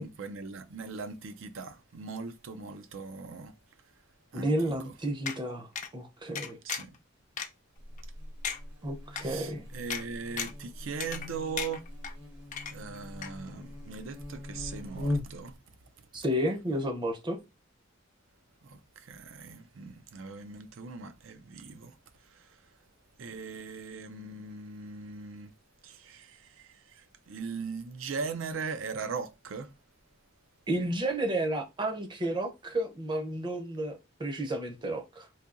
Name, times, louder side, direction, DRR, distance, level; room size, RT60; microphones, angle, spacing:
voice 1, 0.0-3.5 4.3-4.9 6.6-7.0 9.1-11.9 12.7-15.5 18.6-21.9 22.3-22.6 23.2-25.5 25.8-29.7, right 5 dB, 75° right, 0.5 m, -40 dB
voice 2, 4.3-6.6 8.8-9.6 16.1-17.4 30.7-35.3, right 1 dB, 25° right, 0.6 m, -32 dB
sound 1, 5.3-5.4 5.8-5.9 6.4-7.0 7.4-7.5 8.0-8.1 8.4-8.6 9.2-9.3 9.9-10.0 10.4-10.6 11.0-11.3 11.6-12.1 12.5-13.0 13.2-13.3, left 7 dB, 40° left, 0.5 m, -35 dB
Buzz, 7.8-15.6, left 1 dB, 60° right, 1.0 m, -40 dB
4.1 x 2.7 x 2.5 m
head